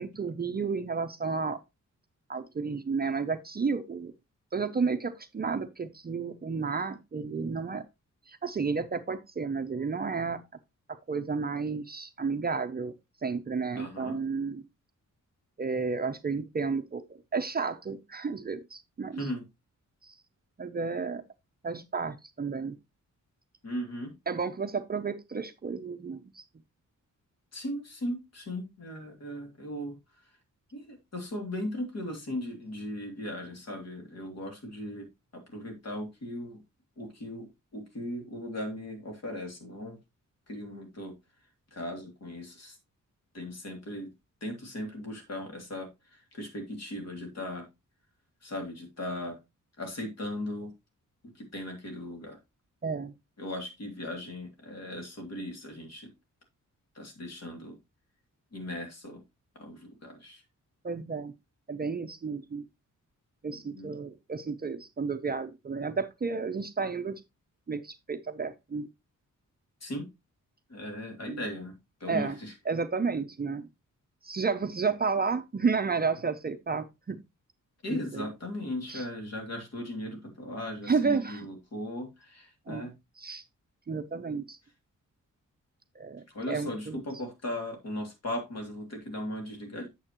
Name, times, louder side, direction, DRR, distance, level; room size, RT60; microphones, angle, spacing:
voice 1, 0.0-1.6 2.3-4.1 4.5-7.8 8.3-10.4 10.9-12.9 13.2-14.6 15.6-17.0 17.3-19.2 20.0-20.1 20.6-21.2 21.6-22.8 24.3-26.4 52.8-53.1 60.8-61.3 61.7-62.6 63.4-67.1 67.7-68.9 71.3-71.4 72.1-72.4 72.7-73.7 74.2-77.2 77.9-78.2 78.9-79.0 80.9-81.5 82.7-82.9 83.2-83.4 83.9-84.6 86.0-87.0, right 5 dB, 30° right, 0.6 m, -32 dB
voice 2, 13.7-14.2 19.1-19.4 23.6-24.1 27.5-30.0 30.7-35.1 35.3-36.6 37.0-40.0 40.5-41.1 41.7-42.8 43.3-44.1 44.4-47.7 48.4-49.4 49.8-50.7 51.2-52.4 53.4-56.1 56.9-57.8 58.5-59.2 59.5-60.4 63.5-63.9 69.8-70.1 70.7-71.7 72.0-72.5 77.8-82.9 86.3-89.9, left 1 dB, 55° left, 2.7 m, -38 dB
8.8 x 7.1 x 3.0 m
wide cardioid pair, 175°, 31 cm